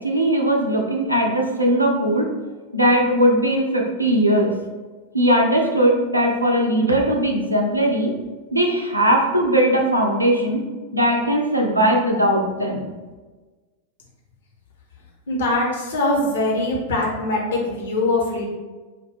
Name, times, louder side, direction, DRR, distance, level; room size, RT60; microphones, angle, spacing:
voice 1, 0.0-2.3 2.7-4.5 5.1-8.1 8.5-10.6 10.9-12.8, right 1 dB, 85° right, 1 dB, 0.6 m, -19 dB
voice 2, 15.3-18.5, left 2 dB, 65° left, -2 dB, 0.9 m, -22 dB
4.9 x 2.4 x 3.3 m, 1.3 s
figure-of-eight pair, 90°, 0 cm